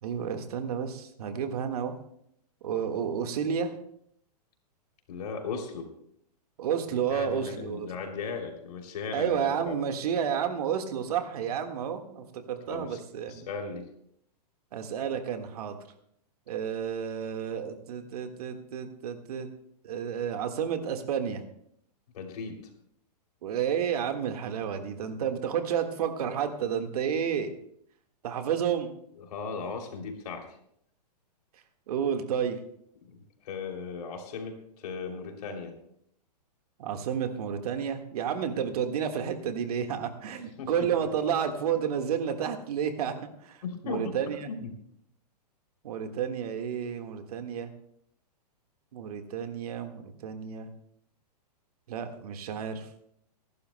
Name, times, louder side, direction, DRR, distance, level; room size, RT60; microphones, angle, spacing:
voice 1, 0.0-1.9 2.6-3.7 6.6-7.9 9.1-13.5 14.7-15.8 16.5-19.5 19.8-21.4 23.4-27.5 28.2-28.9 31.9-32.6 36.8-43.1 43.4-44.5 45.8-47.7 48.9-50.7 51.9-52.9, right 8 dB, 65° right, 6 dB, 1.7 m, -31 dB
voice 2, 5.1-5.9 7.1-9.8 12.7-13.9 22.1-22.6 29.2-30.5 33.0-35.7 40.6-40.9 43.6-44.2 44.5-44.7, left 5 dB, 65° left, 3 dB, 3.0 m, -37 dB
23.5 x 11.5 x 2.2 m, 0.70 s
hypercardioid pair, 130°, 21 cm